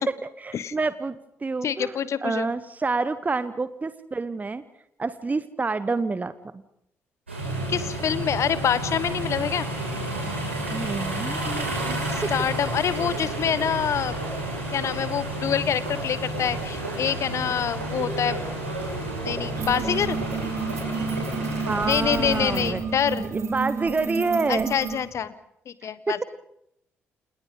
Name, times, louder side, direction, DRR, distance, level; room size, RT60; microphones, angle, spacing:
voice 1, 0.1-4.6 5.0-6.3 10.7-12.3 12.9-13.1 21.6-22.8 23.2-24.7 25.8-26.2, right 3 dB, 25° right, 14 dB, 1.0 m, -28 dB
voice 2, 1.6-2.5 7.7-9.7 12.1-14.1 14.5-18.4 19.2-20.2 21.9-23.3 24.5-25.3 25.7-26.2, left 8 dB, 50° left, 16 dB, 1.3 m, -26 dB
sound 1, 7.3-22.6, right 1 dB, 85° right, 5.8 m, -31 dB
sound 2, 19.5-25.0, right 5 dB, 55° right, 4.5 m, -31 dB
29.0 x 28.0 x 3.8 m, 0.78 s
figure-of-eight pair, 40°, 6 cm